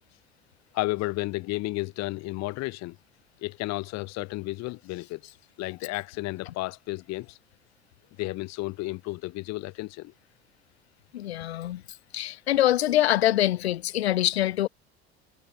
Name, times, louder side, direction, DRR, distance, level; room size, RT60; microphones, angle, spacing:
voice 1, 0.7-3.0 3.4-7.4 8.2-10.1 11.4-11.5, left 21 dB, 55° left, 2.0 m, -32 dB
voice 2, 11.1-11.8 12.1-14.7, left 13 dB, 80° left, 0.7 m, -24 dB
figure-of-eight pair, 65°, 31 cm